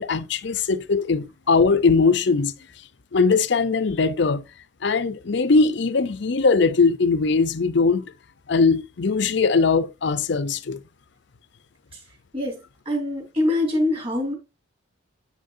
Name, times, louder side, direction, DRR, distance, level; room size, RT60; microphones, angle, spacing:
voice 1, 0.0-2.5 3.1-4.4 4.8-8.1 8.5-10.8, left 4 dB, 60° left, 0.6 m, -20 dB
voice 2, 12.8-14.3, left 1 dB, 30° right, 3.1 m, -24 dB
8.6 x 6.5 x 2.6 m
head